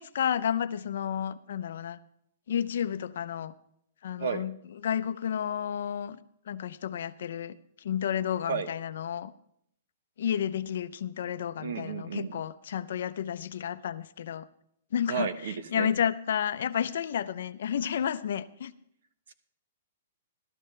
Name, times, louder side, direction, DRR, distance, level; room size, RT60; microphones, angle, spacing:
voice 1, 0.0-2.0 2.5-3.5 4.0-4.6 4.8-6.2 6.5-9.3 10.2-14.5 14.9-18.7, left 9 dB, 55° left, 12 dB, 0.6 m, -31 dB
voice 2, 11.6-12.3 15.1-15.9, right 6 dB, 60° right, 11 dB, 1.0 m, -32 dB
15.0 x 12.5 x 3.3 m, 0.72 s
hypercardioid pair, 180°, 0 cm